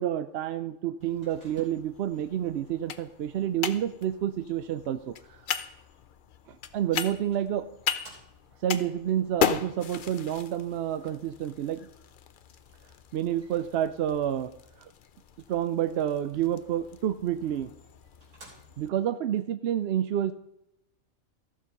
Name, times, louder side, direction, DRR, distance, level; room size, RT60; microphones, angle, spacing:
voice 1, 0.0-5.1 6.5-7.7 8.6-11.9 13.1-14.5 14.8-14.9 15.5-17.7 18.8-20.3, right 10 dB, 65° right, 11 dB, 0.6 m, -29 dB
sound 1, 1.0-18.9, left 7 dB, 55° left, 0.6 m, -37 dB
Microwave oven, 1.2-2.1 6.5-6.6 7.3-8.7 13.3-14.2 17.3-17.4 17.8-17.9 18.2-19.1, right 2 dB, 80° right, 3.9 m, -55 dB
14.0 x 6.4 x 5.3 m, 0.82 s
omnidirectional pair, 1.5 m